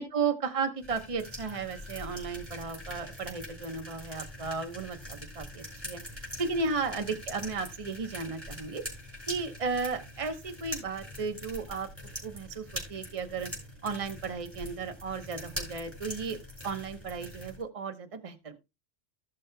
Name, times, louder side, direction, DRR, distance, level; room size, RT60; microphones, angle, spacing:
voice 1, 0.0-6.0 6.4-8.8 9.3-11.9 12.2-13.5 13.8-16.4 16.6-18.6, right 4 dB, 30° right, 1.0 m, -34 dB
sound 1, 0.8-17.6, equal, 10° right, 4.9 m, -43 dB
16.5 x 6.3 x 2.2 m
omnidirectional pair, 1.2 m